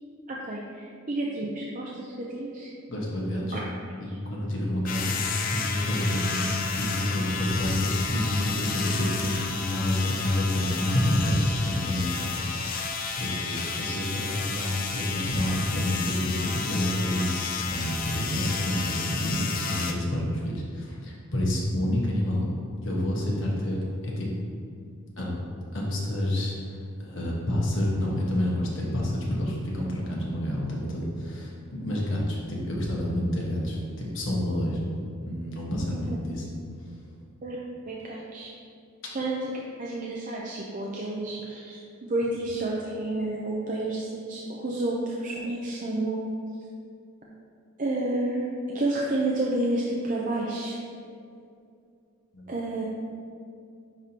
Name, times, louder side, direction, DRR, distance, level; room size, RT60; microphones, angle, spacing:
voice 1, 0.3-2.7 3.5-3.6 4.1-4.2 35.9-36.2 37.4-37.6 37.9-38.5 39.1-39.5 39.8-46.3 47.8-50.8 52.5-52.8, right 2 dB, 40° right, -4 dB, 0.5 m, -30 dB
voice 2, 2.9-3.6 4.0-22.5 22.8-23.8 24.0-24.3 25.2-25.4 25.7-26.5 27.0-33.8 34.1-34.8 35.2-36.4 52.3-52.4, left 1 dB, 60° left, -3 dB, 1.2 m, -28 dB
sound 1, 4.9-19.9, left 5 dB, 40° left, 0.4 m, -32 dB
9.9 x 3.6 x 2.8 m, 2.4 s
head